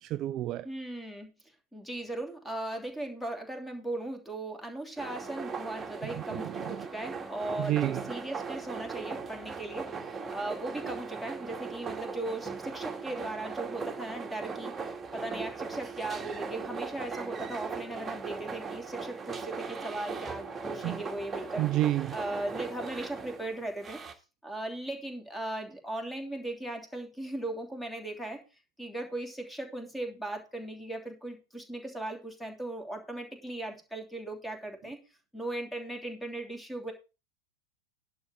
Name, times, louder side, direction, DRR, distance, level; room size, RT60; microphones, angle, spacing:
voice 1, 0.0-0.7 6.3-6.8 7.6-8.0 20.8-21.0 21.6-22.2, right 14 dB, 35° right, 0.4 m, -30 dB
voice 2, 0.6-1.3 1.7-21.6 22.1-24.0 24.4-28.4 28.8-35.0 35.3-36.9, right 1 dB, 5° left, 3.0 m, -38 dB
sound 1, 5.0-24.1, right 5 dB, 15° right, 2.0 m, -39 dB
11.0 x 5.0 x 7.1 m
figure-of-eight pair, 90°, 0 cm